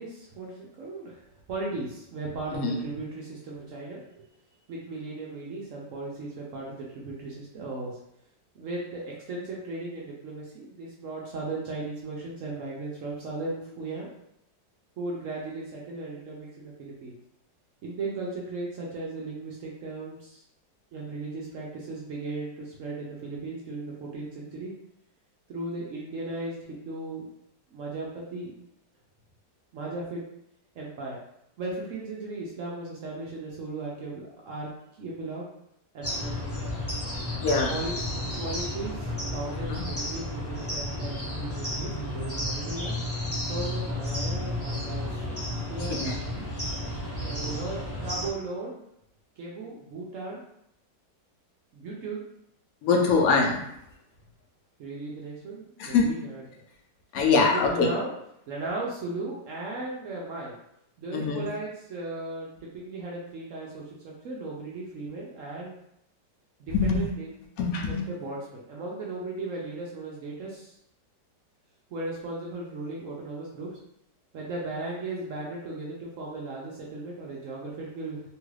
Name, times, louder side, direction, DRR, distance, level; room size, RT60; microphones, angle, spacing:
voice 1, 0.0-4.3 4.7-8.0 8.5-14.1 15.0-17.1 17.8-20.4 20.9-24.7 25.5-27.3 27.7-28.5 29.7-30.2 30.8-31.2 31.6-34.7 35.0-35.4 35.9-36.7 37.7-42.9 43.5-45.1 45.7-46.1 47.2-48.8 49.4-50.4 51.7-52.2 52.9-53.3 54.8-56.4 57.4-58.1 58.5-60.6 61.0-65.7 66.6-67.3 67.9-70.8 71.9-73.7 74.3-78.2, right 2 dB, 75° right, -3 dB, 0.7 m, -36 dB
sound 1, 36.0-48.3, left 1 dB, 20° left, 0.4 m, -32 dB
voice 2, 37.4-37.7 39.5-39.8 45.9-46.5 52.8-53.7 55.8-56.1 57.1-57.9 61.1-61.5 66.7-67.1 67.6-68.0, left 4 dB, 75° left, 1 dB, 0.8 m, -24 dB
3.0 x 2.4 x 3.1 m, 0.77 s
omnidirectional pair, 2.0 m